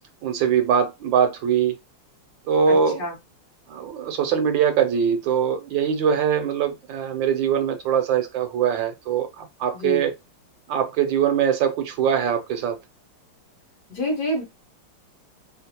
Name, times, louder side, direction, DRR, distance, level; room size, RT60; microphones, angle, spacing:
voice 1, 0.2-1.7 2.5-3.0 3.7-10.1 10.7-12.8, right 7 dB, 75° right, 1.3 m, -22 dB
voice 2, 2.7-3.2 9.7-10.1 13.9-14.4, equal, 55° left, 1.8 m, -27 dB
3.8 x 2.0 x 2.8 m
omnidirectional pair, 2.2 m